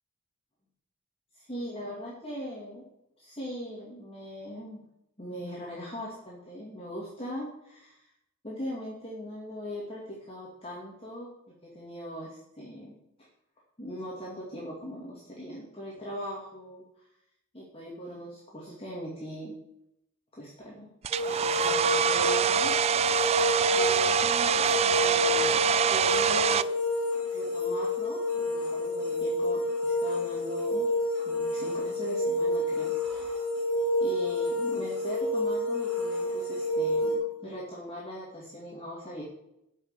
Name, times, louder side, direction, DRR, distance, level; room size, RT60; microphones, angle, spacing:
voice 1, 1.5-2.8 3.2-4.8 5.2-8.1 8.4-11.3 11.6-13.0 13.8-16.8 17.5-19.5 20.4-20.9 21.3-23.1 23.7-25.5 25.9-26.7 27.3-30.9 31.2-33.3 34.0-39.2, equal, 30° left, -4 dB, 2.5 m, -40 dB
Domestic sounds home sounds, 21.0-26.6, right 8 dB, 30° right, 0.3 m, -25 dB
sound 1, 21.1-37.2, left 1 dB, 5° left, 5.1 m, -29 dB
9.8 x 6.7 x 8.5 m, 0.81 s
head